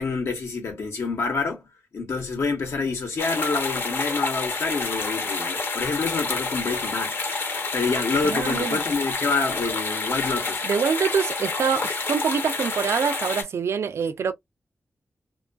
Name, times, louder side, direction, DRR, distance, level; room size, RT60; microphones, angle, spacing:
voice 1, 0.0-1.6 1.9-10.6, left 4 dB, 90° left, 0.9 m, -27 dB
sound 1, 3.2-13.4, left 3 dB, 50° left, 0.6 m, -28 dB
voice 2, 8.2-8.8 10.6-14.3, right 6 dB, 80° right, 0.4 m, -25 dB
2.5 x 2.3 x 2.2 m
wide cardioid pair, 145°, 4 cm